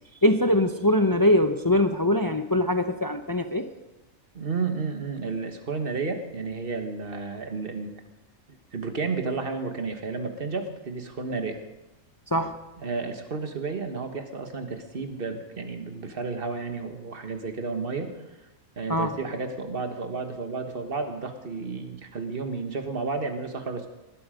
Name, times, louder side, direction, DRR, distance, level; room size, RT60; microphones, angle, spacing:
voice 1, 0.2-3.7 12.3-12.6 18.9-19.2, left 1 dB, 25° left, 8 dB, 0.5 m, -22 dB
voice 2, 4.3-8.0 8.7-11.6 12.8-18.1 18.8-23.9, right 4 dB, 45° right, 6 dB, 1.7 m, -32 dB
19.5 x 12.5 x 5.2 m, 1.0 s
omnidirectional pair, 1.4 m